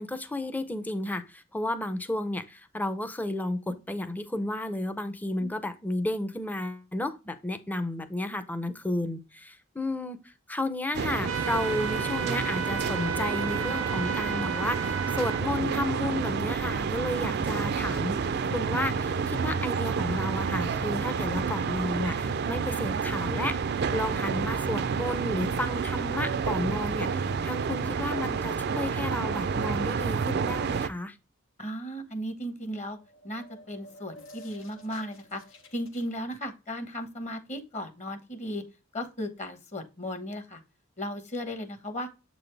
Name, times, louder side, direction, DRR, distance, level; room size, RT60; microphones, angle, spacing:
voice 1, 0.0-18.2 18.5-23.6 23.9-31.2, left 1 dB, 10° left, 0.6 m, -32 dB
sound 1, 10.9-30.9, right 5 dB, 55° right, 0.4 m, -29 dB
sound 2, 11.2-15.4, right 6 dB, 85° right, 0.7 m, -33 dB
voice 2, 31.6-33.0 33.2-35.4 35.7-38.6 38.9-40.6 41.0-42.1, equal, 35° left, 1.1 m, -36 dB
sound 3, 32.9-36.1, equal, 85° left, 1.1 m, -51 dB
7.3 x 4.1 x 3.3 m
head